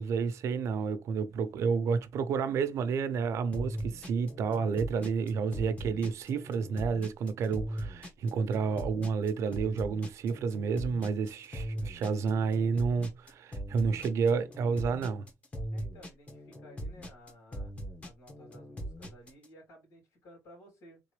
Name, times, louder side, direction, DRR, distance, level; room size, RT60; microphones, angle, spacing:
voice 1, 0.0-15.3, right 5 dB, 75° right, 0.8 m, -30 dB
sound 1, 3.5-19.5, right 1 dB, 25° left, 1.6 m, -40 dB
voice 2, 15.7-17.7 18.0-21.0, equal, 85° left, 3.4 m, -55 dB
4.0 x 3.8 x 3.3 m
cardioid pair, 130°, 5 cm